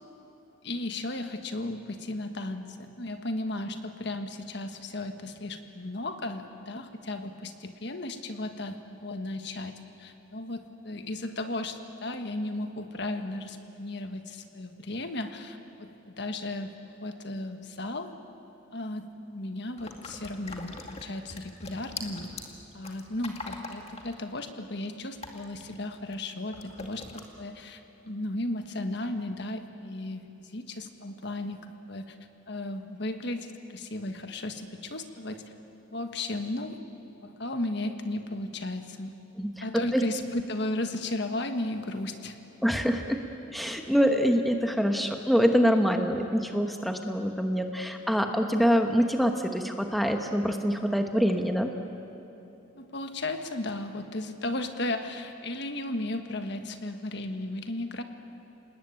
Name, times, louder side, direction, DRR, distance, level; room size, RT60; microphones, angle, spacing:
voice 1, 0.6-18.1 18.7-22.3 22.7-32.2 32.5-35.5 35.9-36.8 37.2-39.1 39.6-42.4 43.6-43.8 52.8-58.0, left 2 dB, 55° left, 7 dB, 1.5 m, -35 dB
sound 1, 19.8-26.2 26.5-27.2, left 3 dB, 30° left, 2.2 m, -43 dB
voice 2, 42.6-43.2 43.5-51.7, equal, ahead, 4 dB, 1.2 m, -25 dB
29.5 x 20.0 x 9.0 m, 2.9 s
head